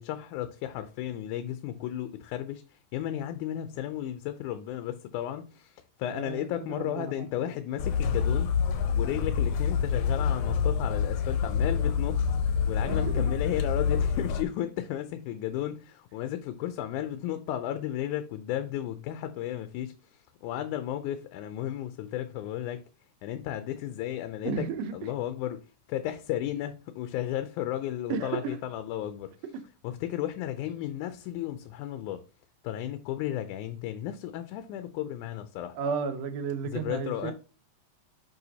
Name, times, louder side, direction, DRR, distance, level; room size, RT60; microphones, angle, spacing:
voice 1, 0.0-8.6 9.0-22.8 23.2-24.7 24.9-29.3 29.8-32.2 32.6-35.8 36.6-37.3, left 12 dB, 90° left, 2.1 m, -34 dB
voice 2, 6.1-7.1 7.4-7.5 12.9-13.3 24.4-24.9 28.1-28.6 29.5-29.6 35.8-37.3, right 5 dB, 70° right, 1.8 m, -33 dB
sound 1, 7.8-14.4, left 6 dB, 70° left, 1.6 m, -27 dB
6.7 x 5.5 x 2.8 m
omnidirectional pair, 3.5 m